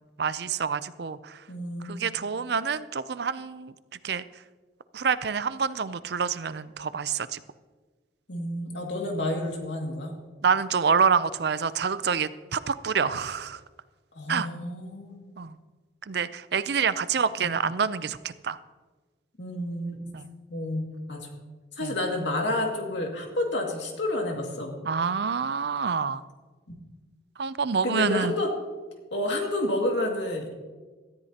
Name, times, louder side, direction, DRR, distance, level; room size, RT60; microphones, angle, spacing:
voice 1, 0.2-1.4 1.8-3.7 4.0-4.2 4.9-7.4 10.4-13.6 14.3-14.5 15.4-15.6 16.1-18.2 18.4-18.6 20.1-20.3 21.8-21.9 24.9-26.2 27.4-28.3, right 6 dB, 60° right, 15 dB, 0.5 m, -27 dB
voice 2, 1.5-2.1 8.3-10.2 14.1-15.3 17.4-17.5 19.4-20.2 20.5-21.3 21.8-24.8 26.7-26.8 27.8-28.5 29.1-30.5, left 1 dB, 70° left, 1 dB, 2.2 m, -30 dB
18.0 x 13.5 x 2.9 m, 1.3 s
head